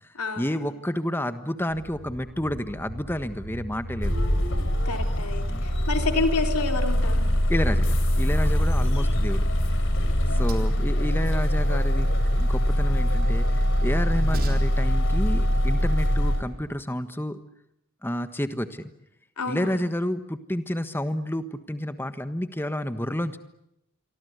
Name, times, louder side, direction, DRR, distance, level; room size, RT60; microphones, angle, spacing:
voice 1, 0.0-4.2 5.5-5.7 7.5-9.5 10.3-17.4 18.0-18.9 19.4-23.4, left 1 dB, 10° left, 10 dB, 1.4 m, -30 dB
sound 1, 1.7-13.6, right 1 dB, 65° right, 6.4 m, -42 dB
sound 2, 4.0-16.4, equal, 55° left, 4.2 m, -23 dB
voice 2, 4.9-7.3 10.4-10.7 19.4-19.8, left 3 dB, 90° left, 5 dB, 3.8 m, -29 dB
Train, 9.1-16.8, right 1 dB, 40° right, 3.6 m, -43 dB
28.0 x 24.0 x 8.2 m, 0.80 s
head